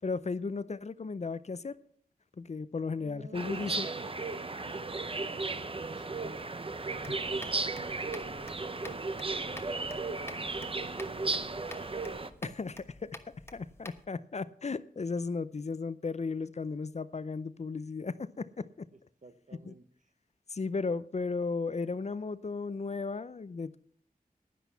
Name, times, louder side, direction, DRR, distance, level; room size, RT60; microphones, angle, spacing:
voice 1, 0.0-1.7 2.4-3.9 12.4-12.7 13.0-13.1 13.5-18.9 19.7-19.8 20.5-23.8, left 4 dB, 45° left, 16 dB, 0.5 m, -35 dB
voice 2, 3.0-3.9 5.1-8.8 9.3-10.4 10.8-11.9 12.4-12.5 19.2-19.9, right 3 dB, 55° right, 10 dB, 1.0 m, -50 dB
sound 1, 3.3-12.3, right 3 dB, 35° right, 0.7 m, -35 dB
sound 2, 7.0-14.1, left 1 dB, 15° left, 1.2 m, -50 dB
10.5 x 10.0 x 5.7 m, 0.62 s
wide cardioid pair, 85°, 15 cm